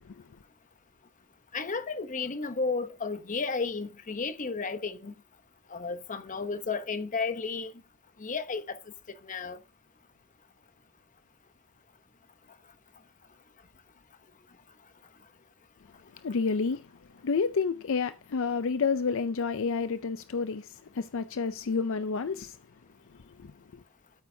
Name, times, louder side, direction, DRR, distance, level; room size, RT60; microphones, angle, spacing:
voice 1, 1.5-5.1 5.7-7.7 8.2-8.8 9.2-9.6, left 4 dB, 35° left, 0.9 m, -33 dB
voice 2, 16.2-16.9 17.2-22.6 23.4-23.8, left 5 dB, 60° left, 0.5 m, -30 dB
12.5 x 9.2 x 2.7 m
head